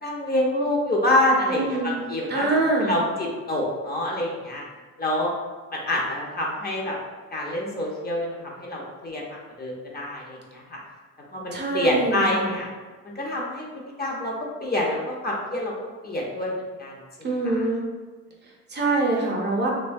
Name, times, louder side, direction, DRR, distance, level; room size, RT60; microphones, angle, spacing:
voice 1, 0.0-2.5 2.8-4.6 5.0-5.3 5.7-7.0 7.3-10.8 11.3-12.7 13.0-13.7 14.0-14.3 14.6-15.7 16.0-16.9 17.2-17.7, left 1 dB, 30° left, -3 dB, 0.6 m, -26 dB
voice 2, 1.5-2.0 2.3-2.9 11.5-12.5 17.2-17.9 18.7-19.7, right 2 dB, 35° right, -1 dB, 0.5 m, -24 dB
2.6 x 2.1 x 2.5 m, 1.4 s
cardioid pair, 90°, 30 cm